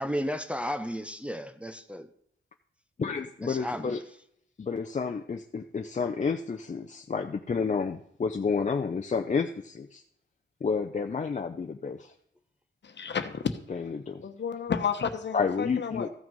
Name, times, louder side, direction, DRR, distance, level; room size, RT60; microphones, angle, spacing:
voice 1, 0.0-2.1 3.4-4.0, equal, 5° right, 0.6 m, -33 dB
voice 2, 3.0-4.0 4.6-10.0 10.6-12.1 13.7-14.3 15.3-16.1, left 5 dB, 40° left, 0.6 m, -30 dB
voice 3, 12.8-13.6 14.2-16.1, left 6 dB, 65° left, 1.1 m, -31 dB
14.5 x 6.1 x 5.4 m
wide cardioid pair, 115°, 20 cm